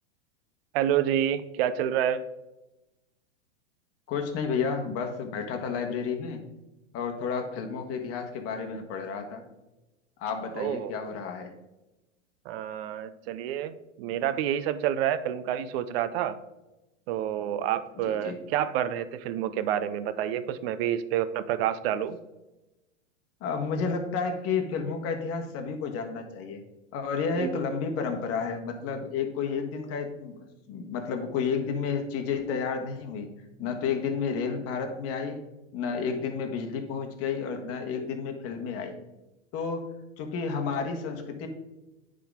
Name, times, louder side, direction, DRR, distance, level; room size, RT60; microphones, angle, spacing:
voice 1, 0.7-2.2 10.6-11.0 12.5-16.4 17.1-22.2 27.4-27.5, right 10 dB, 55° right, 13 dB, 0.6 m, -28 dB
voice 2, 4.1-6.4 6.9-9.4 10.2-11.5 18.0-18.4 23.4-26.6 26.9-33.3 33.6-35.4 35.7-39.0 39.5-41.5, left 5 dB, 40° left, 5 dB, 1.3 m, -31 dB
9.7 x 3.8 x 3.6 m, 1.0 s
hypercardioid pair, 110°, 36 cm